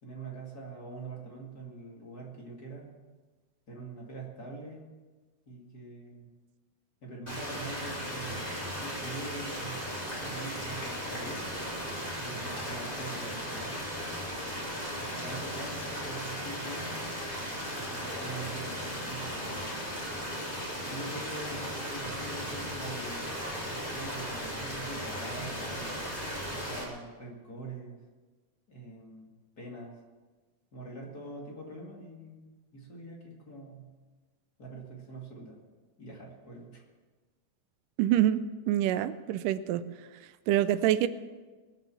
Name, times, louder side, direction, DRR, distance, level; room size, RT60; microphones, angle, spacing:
voice 1, 0.0-3.0 3.7-4.9 5.5-6.3 7.0-11.5 12.2-13.8 15.0-17.0 17.7-19.7 20.9-23.4 23.7-26.0 26.5-28.0 28.7-29.9 30.7-32.4 32.7-33.9 34.6-35.6 36.0-36.8, right 3 dB, 30° left, -1 dB, 2.5 m, -44 dB
sound 1, 7.3-26.8, equal, 15° left, 3.6 m, -36 dB
voice 2, 38.0-39.8 40.5-41.1, right 12 dB, 85° right, 13 dB, 2.2 m, -26 dB
21.5 x 7.4 x 7.2 m, 1.3 s
omnidirectional pair, 3.8 m